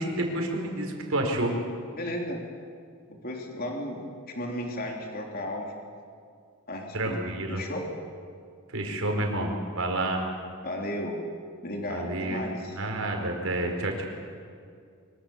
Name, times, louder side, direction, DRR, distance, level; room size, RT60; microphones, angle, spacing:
voice 1, 0.0-1.5 6.9-7.6 8.7-10.2 11.9-14.0, right 1 dB, 75° right, 2 dB, 4.8 m, -29 dB
voice 2, 2.0-2.4 3.1-4.0 4.3-5.7 6.7-7.2 7.5-7.8 10.6-11.2 11.6-12.8, left 1 dB, 45° left, 1 dB, 3.5 m, -34 dB
25.0 x 24.0 x 7.3 m, 2.2 s
head